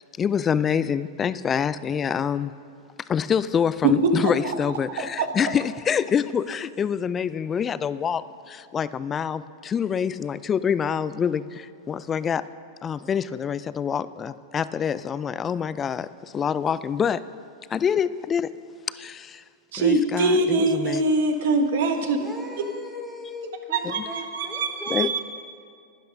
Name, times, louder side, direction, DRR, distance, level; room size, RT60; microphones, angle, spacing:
voice 1, 0.2-2.5 3.1-12.4 12.8-17.2 17.7-18.5 18.9-19.4 19.8-21.0 24.9-25.1, left 7 dB, 25° left, 16 dB, 0.4 m, -26 dB
voice 2, 3.8-4.5 5.0-5.3 19.7-22.2 23.7-25.2, right 3 dB, 70° right, 6 dB, 1.3 m, -23 dB
voice 3, 21.9-25.0, left 1 dB, 10° right, -1 dB, 1.8 m, -39 dB
12.0 x 10.0 x 5.3 m, 2.2 s
hypercardioid pair, 115°, 0 cm